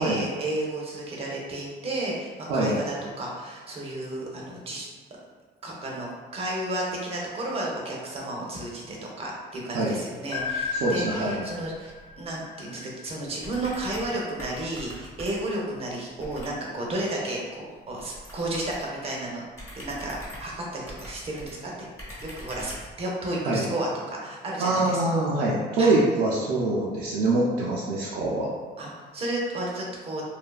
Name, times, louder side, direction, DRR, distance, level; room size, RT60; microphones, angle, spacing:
voice 1, 0.0-4.9 5.6-19.4 19.7-21.9 22.2-25.0 25.8-26.0 28.8-30.2, right 1 dB, 35° right, -2 dB, 0.6 m, -32 dB
sound 1, 10.3-13.2, left 5 dB, 40° left, 0.6 m, -34 dB
voice 2, 10.8-11.4 23.4-23.7 24.6-28.5, right 2 dB, 75° right, -5 dB, 0.5 m, -24 dB
sound 2, 13.4-14.1 14.4-15.6 16.2-16.6 18.0-18.9 19.5-21.5 22.0-22.9, equal, 15° left, 1.1 m, -42 dB
2.7 x 2.3 x 2.3 m, 1.5 s
cardioid pair, 110°, 17 cm